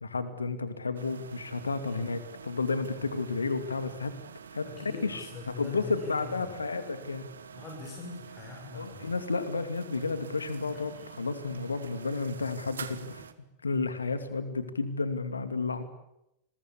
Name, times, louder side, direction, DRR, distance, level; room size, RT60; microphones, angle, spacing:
voice 1, 0.0-4.1 4.5-5.3 5.6-7.3 8.7-13.2 13.6-15.8, left 4 dB, 75° left, 11 dB, 2.6 m, -32 dB
sound 1, 0.9-13.3, right 7 dB, 70° right, 1.7 m, -47 dB
voice 2, 4.6-6.6 7.5-9.1 10.7-11.1, left 5 dB, 30° left, 1 dB, 7.1 m, -43 dB
29.5 x 22.0 x 8.5 m, 0.82 s
figure-of-eight pair, 90°, 0 cm